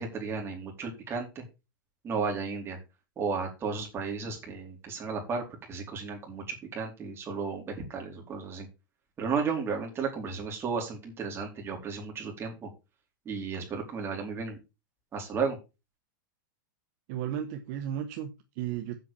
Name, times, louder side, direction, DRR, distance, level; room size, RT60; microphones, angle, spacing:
voice 1, 0.0-1.4 2.0-2.8 3.2-8.7 9.2-12.7 13.3-14.6 15.1-15.6, right 5 dB, 20° right, 1 dB, 4.2 m, -34 dB
voice 2, 17.1-19.0, right 10 dB, 50° right, 7 dB, 1.3 m, -34 dB
8.2 x 5.8 x 7.1 m, 0.28 s
supercardioid pair, 140°, 11 cm